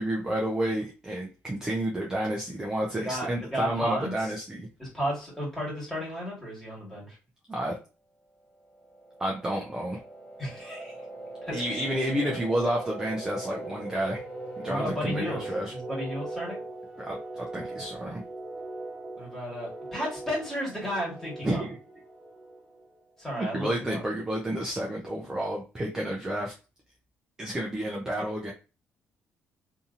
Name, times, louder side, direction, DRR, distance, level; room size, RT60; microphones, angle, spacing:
voice 1, 0.0-4.7 7.5-7.8 9.2-10.0 11.5-14.2 14.6-15.7 17.0-18.2 21.4-21.8 23.4-26.5 27.4-28.5, right 1 dB, 15° right, -2 dB, 0.5 m, -30 dB
voice 2, 2.9-4.3 4.8-7.2 10.4-11.0 11.4-11.8 14.6-15.4 15.7-16.6 19.2-21.6 23.2-24.0, equal, 5° left, -5 dB, 1.6 m, -33 dB
sound 1, 8.5-23.1, right 2 dB, 25° left, 1.0 m, -41 dB
2.7 x 2.7 x 2.5 m, 0.32 s
cardioid pair, 150°, 4 cm